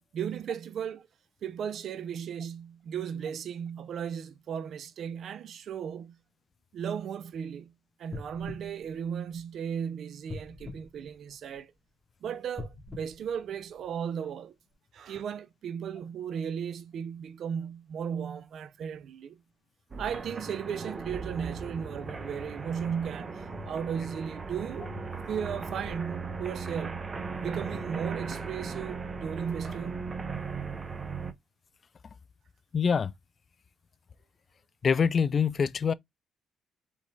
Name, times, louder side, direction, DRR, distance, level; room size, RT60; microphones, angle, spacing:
voice 1, 0.1-1.1 1.4-6.2 6.7-7.7 8.0-11.7 12.2-14.5 14.9-19.4 20.0-24.9 25.3-27.1 27.4-30.0, right 8 dB, 65° right, 0.5 m, -36 dB
sound 1, 8.1-9.7 10.3-11.8 12.5-14.2 14.7-14.8, left 3 dB, 25° left, 2.0 m, -45 dB
sound 2, 19.9-31.3, right 4 dB, 35° right, 0.7 m, -38 dB
voice 2, 32.7-33.1 34.8-35.9, left 6 dB, 45° left, 0.4 m, -25 dB
4.1 x 3.6 x 3.1 m
cardioid pair, 90°, 0 cm